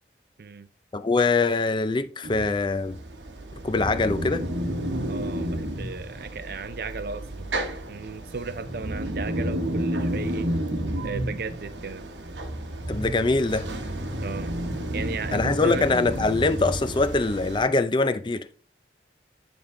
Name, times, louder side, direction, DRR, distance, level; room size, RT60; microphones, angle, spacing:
voice 1, 0.9-3.0 3.6-4.4 12.9-13.7 15.3-18.5, left 3 dB, 25° left, 0.4 m, -23 dB
sound 1, 2.2-17.7, right 1 dB, 85° right, 1.0 m, -31 dB
voice 2, 5.1-7.5 7.9-10.5 11.0-12.0 14.2-14.5 14.9-15.8, right 4 dB, 55° right, 0.5 m, -35 dB
9.4 x 3.7 x 3.7 m
head